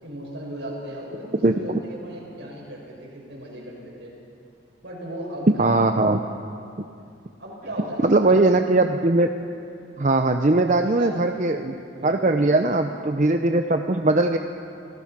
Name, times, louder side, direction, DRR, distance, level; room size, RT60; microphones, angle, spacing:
voice 1, 0.0-4.1 4.8-6.3 7.4-8.5 10.8-11.2 11.9-12.8, right 1 dB, 75° right, -2 dB, 6.5 m, -37 dB
voice 2, 5.5-6.2 8.0-9.3 10.0-11.8 12.0-14.4, right 2 dB, 40° right, 6 dB, 0.7 m, -20 dB
28.0 x 18.0 x 6.0 m, 2.5 s
head